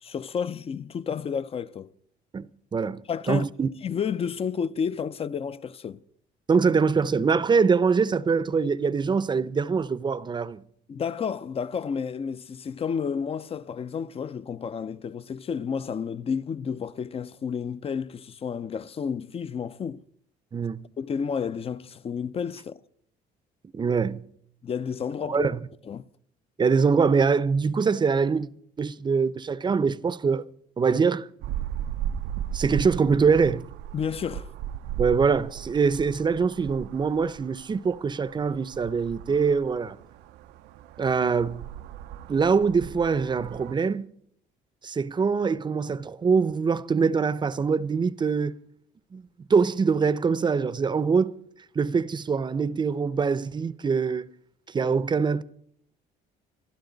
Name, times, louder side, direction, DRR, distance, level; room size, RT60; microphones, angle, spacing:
voice 1, 0.0-1.9 3.1-3.4 3.8-6.0 10.9-20.0 21.0-22.8 24.6-25.5 25.9-26.1 33.9-34.5, left 6 dB, 35° left, 0.6 m, -31 dB
voice 2, 2.3-3.0 3.3-3.7 6.5-10.6 20.5-20.8 23.7-24.2 25.3-25.6 26.6-28.5 28.8-30.4 30.8-31.3 32.5-33.7 35.0-40.0 41.0-41.7 42.3-44.1 44.8-48.6 49.1-49.2 49.5-51.3 51.7-54.2 54.7-55.4, right 5 dB, 25° right, 0.7 m, -23 dB
sound 1, 31.4-43.7, right 10 dB, 85° right, 0.6 m, -37 dB
27.0 x 12.0 x 4.0 m
cardioid pair, 110°, 17 cm